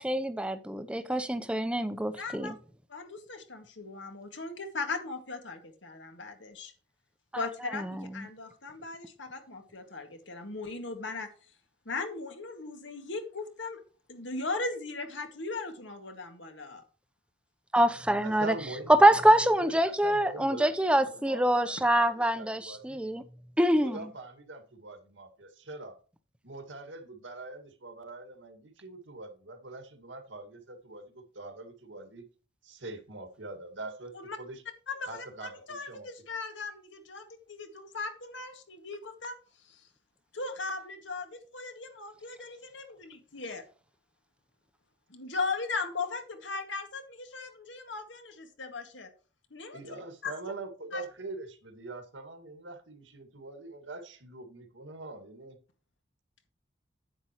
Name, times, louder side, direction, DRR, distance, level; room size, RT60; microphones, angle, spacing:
voice 1, 0.0-2.5 7.7-8.0 17.7-18.5 18.9-23.2 23.6-24.0, right 1 dB, 5° right, 0.7 m, -25 dB
voice 2, 2.2-2.6 2.9-6.7 7.4-11.3 11.9-13.8 14.1-16.8 34.1-34.4 34.9-39.9 40.3-43.6 45.1-49.1 49.5-50.3 50.9-51.0, left 3 dB, 80° left, 2.0 m, -38 dB
voice 3, 18.2-23.0 23.6-26.0 26.4-32.3 32.6-34.6 35.1-36.1 49.7-55.6, right 2 dB, 85° right, 2.1 m, -43 dB
9.8 x 8.6 x 3.1 m
head